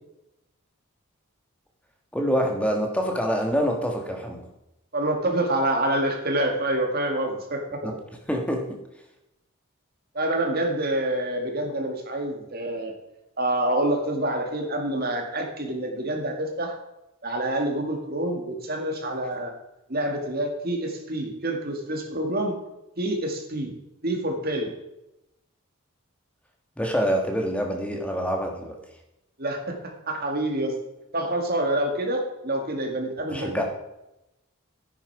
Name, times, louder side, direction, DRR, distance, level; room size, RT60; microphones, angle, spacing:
voice 1, 2.1-4.5 7.8-8.0 8.3-8.8 26.8-28.8 33.3-33.6, equal, 5° left, 2 dB, 1.4 m, -26 dB
voice 2, 4.9-7.8 10.1-12.9 13.4-16.8 17.2-19.5 19.9-22.6 23.0-23.7 24.0-24.7 29.4-29.8 30.1-30.7 31.1-33.6, right 1 dB, 45° right, 3 dB, 2.0 m, -27 dB
10.0 x 10.0 x 4.7 m, 0.91 s
head